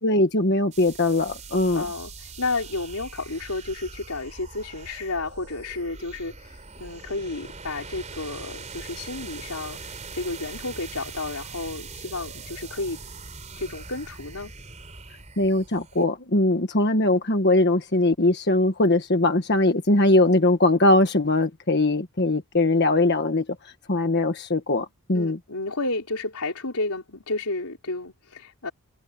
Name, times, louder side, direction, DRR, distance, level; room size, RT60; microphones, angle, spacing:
voice 1, 0.0-1.8 15.4-25.4, left 2 dB, 50° left, 1.5 m, -21 dB
sound 1, 0.7-16.0, right 4 dB, 30° right, 4.4 m, -41 dB
voice 2, 1.7-13.0 13.6-14.5 25.1-28.7, left 2 dB, 85° left, 3.9 m, -32 dB
head